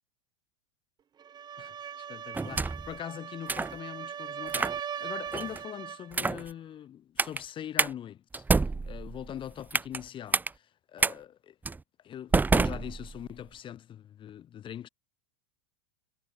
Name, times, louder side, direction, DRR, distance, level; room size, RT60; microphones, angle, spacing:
sound 1, 1.2-6.1, right 8 dB, 30° right, 2.9 m, -39 dB
voice 1, 1.6-8.4 8.8-11.6 12.0-14.9, left 10 dB, 35° left, 7.0 m, -42 dB
sound 2, 2.3-2.9 3.5-3.8 4.5-4.8 5.3-5.6 6.1-6.5 7.2-7.4 7.8-7.9 8.3-10.0 10.3-10.5 11.0-11.1 11.7-11.8 12.3-13.4, right 3 dB, 10° right, 1.1 m, -28 dB
hypercardioid pair, 100°, 15 cm